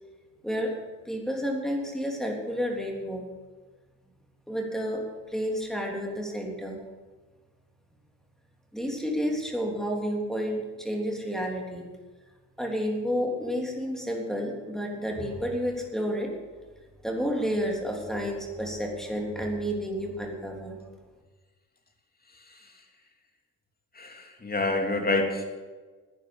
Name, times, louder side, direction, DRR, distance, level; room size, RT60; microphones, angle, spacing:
voice 1, 1.0-3.3 4.5-6.8 8.7-11.9 12.6-16.3 17.0-20.8, equal, ahead, 0 dB, 3.4 m, -30 dB
voice 2, 23.9-25.4, left 2 dB, 25° left, 3 dB, 3.0 m, -28 dB
11.0 x 9.9 x 8.8 m, 1.3 s
cardioid pair, 70°, 34 cm